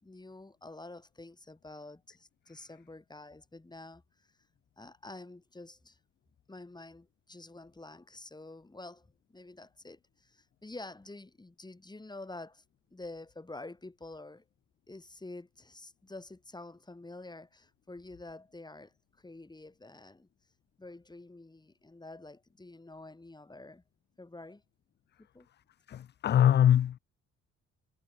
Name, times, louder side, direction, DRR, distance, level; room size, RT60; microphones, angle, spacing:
voice 1, 0.0-4.3 4.8-6.0 6.5-12.6 12.9-14.4 14.9-20.3 20.8-23.8 24.2-24.6 25.3-25.5, left 2 dB, 15° left, 3.0 m, -48 dB
voice 2, 25.9-27.0, left 10 dB, 35° left, 0.4 m, -23 dB
cardioid pair, 90°, 30 cm